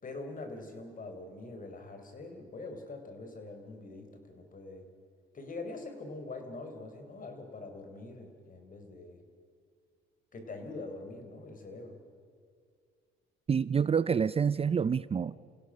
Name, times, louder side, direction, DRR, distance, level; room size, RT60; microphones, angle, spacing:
voice 1, 0.0-4.8 5.3-9.2 10.3-12.0, left 2 dB, 45° left, 4.4 m, -44 dB
voice 2, 13.5-15.4, right 6 dB, 30° right, 0.5 m, -27 dB
28.5 x 16.5 x 6.5 m
cardioid pair, 90°, 20 cm